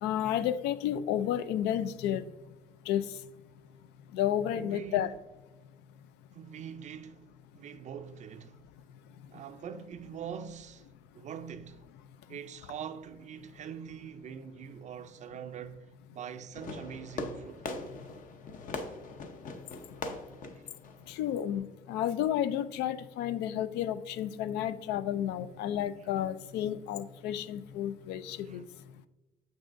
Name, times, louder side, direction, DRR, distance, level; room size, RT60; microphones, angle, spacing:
voice 1, 0.0-2.2 2.9-3.0 4.1-5.1 21.2-28.6, left 10 dB, 85° left, 0.4 m, -31 dB
voice 2, 4.5-5.1 6.3-7.3 7.5-8.6 9.3-10.9 11.1-11.9 12.3-17.6 20.5-20.6 28.4-28.6, right 8 dB, 45° right, 0.4 m, -43 dB
Fireworks, 16.5-21.6, left 3 dB, 50° left, 0.7 m, -41 dB
7.2 x 6.0 x 2.5 m
cardioid pair, 110°, 17 cm